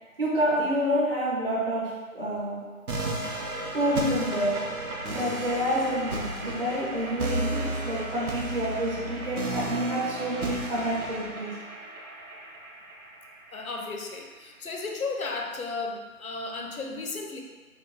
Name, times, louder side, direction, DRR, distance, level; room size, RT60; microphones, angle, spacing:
voice 1, 0.2-2.6 3.7-4.5 5.1-11.6, equal, 40° right, -8 dB, 1.0 m, -28 dB
sound 1, 2.9-13.9, right 2 dB, 90° right, 0.8 m, -34 dB
voice 2, 13.5-17.4, left 3 dB, 80° left, 2 dB, 0.8 m, -34 dB
3.7 x 2.2 x 3.7 m, 1.4 s
figure-of-eight pair, 175°, 42 cm